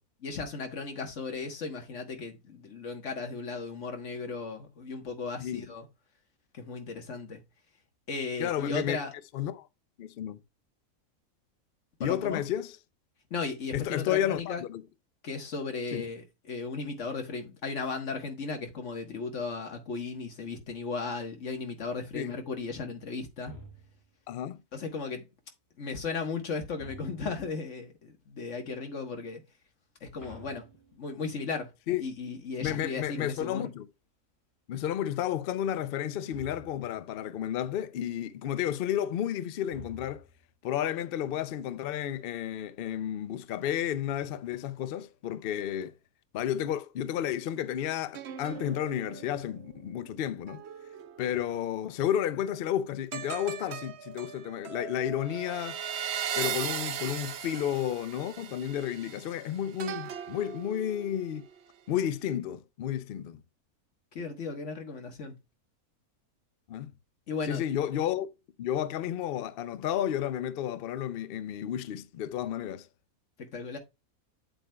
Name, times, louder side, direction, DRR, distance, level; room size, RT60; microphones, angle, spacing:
voice 1, 0.2-5.9 6.5-7.4 8.1-9.1 12.0-12.4 13.3-14.6 15.2-23.5 24.7-25.2 25.8-29.4 30.0-30.7 30.9-31.7 32.0-33.7 64.1-65.3 67.3-67.6 73.4-73.8, left 4 dB, 55° left, 1.6 m, -36 dB
voice 2, 8.4-9.0 9.3-9.7 10.0-10.4 12.0-12.8 13.7-14.8 15.9-16.1 22.1-22.3 24.3-24.6 31.9-32.1 32.6-33.9 34.7-40.2 40.6-45.9 46.3-50.6 51.2-55.8 56.4-61.4 61.9-63.4 66.7-66.9 67.4-68.3 68.6-72.9, left 10 dB, 90° left, 0.5 m, -32 dB
sound 1, 23.5-24.2 26.8-27.6 30.2-31.4 36.3-37.0 39.7-40.5, right 1 dB, 10° left, 1.9 m, -50 dB
sound 2, 48.1-51.8 53.1-61.6 62.1-62.3, right 8 dB, 60° right, 0.8 m, -39 dB
7.9 x 7.9 x 2.3 m
omnidirectional pair, 1.6 m